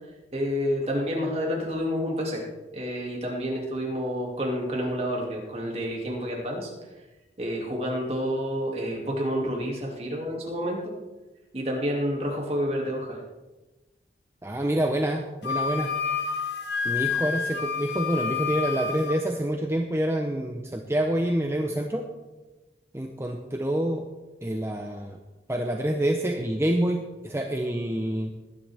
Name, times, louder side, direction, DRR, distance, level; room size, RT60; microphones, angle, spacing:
voice 1, 0.3-2.5 2.7-6.7 7.4-10.8 11.5-13.2, equal, 35° right, -1 dB, 2.5 m, -29 dB
voice 2, 14.4-15.9 16.8-22.1 22.9-24.0 24.4-25.2 25.5-28.3, right 1 dB, 15° right, 2 dB, 0.7 m, -27 dB
Wind instrument woodwind instrument, 15.4-19.2, left 6 dB, 70° left, 0.9 m, -29 dB
19.5 x 10.0 x 3.5 m, 1.1 s
head